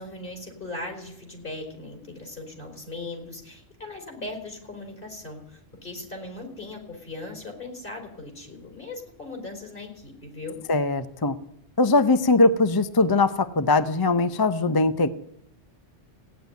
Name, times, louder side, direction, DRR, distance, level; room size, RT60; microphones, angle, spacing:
voice 1, 0.0-10.6, left 2 dB, 45° left, 2 dB, 4.2 m, -38 dB
voice 2, 10.7-11.4 11.8-15.1, left 3 dB, 25° left, 11 dB, 0.5 m, -21 dB
16.0 x 9.7 x 9.3 m, 0.73 s
omnidirectional pair, 1.3 m